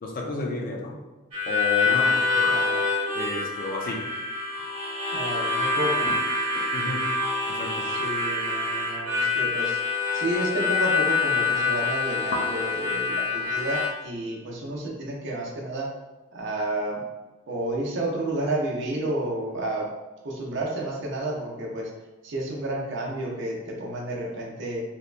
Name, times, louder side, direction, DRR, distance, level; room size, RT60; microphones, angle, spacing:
voice 1, 0.0-1.0 1.5-2.1 2.3-2.5 3.1-4.1 6.1-6.2 6.7-7.1 7.5-7.9, left 3 dB, 40° left, 0 dB, 0.3 m, -31 dB
Harmonica, 1.3-13.9, left 4 dB, 30° right, 0.9 m, -26 dB
voice 2, 1.8-2.8 5.1-6.1 7.8-9.8 10.1-15.9 16.3-17.0 17.5-19.9 20.2-21.9 22.2-24.8, right 1 dB, 55° right, -2 dB, 0.5 m, -31 dB
2.8 x 2.1 x 2.4 m, 1.2 s
head